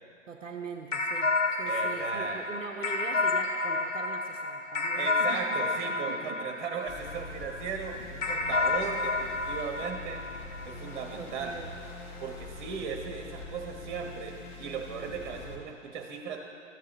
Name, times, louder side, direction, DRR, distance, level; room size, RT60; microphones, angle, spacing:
voice 1, 0.3-6.4 8.5-8.6 11.2-11.7, right 5 dB, 75° right, 3 dB, 0.7 m, -42 dB
sound 1, 0.9-7.5 8.2-11.0, left 3 dB, 80° left, 0.8 m, -30 dB
voice 2, 1.6-2.6 5.0-10.2 10.6-11.6 12.2-16.4, right 6 dB, 40° right, 3 dB, 1.3 m, -37 dB
sound 2, 6.8-15.6, left 3 dB, 35° left, 1.3 m, -44 dB
14.0 x 7.3 x 3.1 m, 2.4 s
figure-of-eight pair, 110°, 38 cm